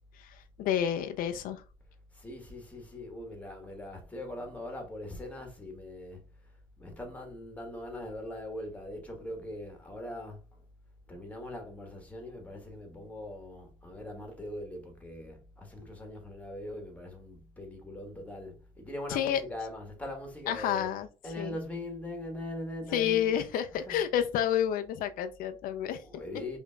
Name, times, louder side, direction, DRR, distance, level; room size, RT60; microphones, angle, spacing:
voice 1, 0.2-1.6 19.1-19.4 20.5-21.1 21.4-21.5 22.9-26.0, left 10 dB, 80° left, 0.4 m, -29 dB
voice 2, 2.1-6.2 6.8-10.6 11.1-20.9 21.2-23.4 23.7-24.1 25.6-26.6, left 1 dB, 10° left, 1.2 m, -41 dB
5.0 x 2.6 x 2.2 m
cardioid pair, 120°, 14 cm